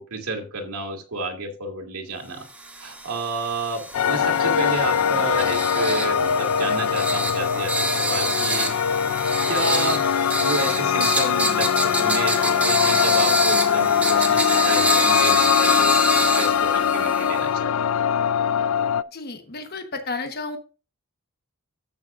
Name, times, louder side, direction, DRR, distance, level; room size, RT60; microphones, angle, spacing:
voice 1, 0.0-2.5 2.8-8.7 9.5-17.7, right 2 dB, 80° right, 2 dB, 2.4 m, -31 dB
sound 1, 2.5-17.4, right 2 dB, 5° right, 1.5 m, -27 dB
sound 2, 3.9-19.0, left 8 dB, 70° left, 0.4 m, -21 dB
voice 2, 19.1-20.6, left 3 dB, 45° left, 6 dB, 1.1 m, -32 dB
14.0 x 6.5 x 2.5 m, 0.34 s
head